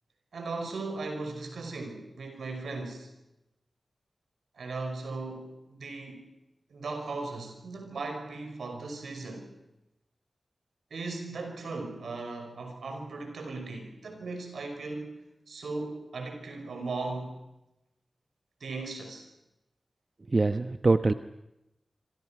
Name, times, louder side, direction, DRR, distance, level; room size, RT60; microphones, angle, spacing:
voice 1, 0.3-3.1 4.5-6.3 6.7-9.5 10.9-15.2 15.5-17.4 18.6-19.2, right 3 dB, 90° right, 5 dB, 5.7 m, -37 dB
voice 2, 20.3-21.1, right 3 dB, 50° right, 10 dB, 1.0 m, -23 dB
27.0 x 26.0 x 6.0 m, 0.91 s
cardioid pair, 40°, 0 cm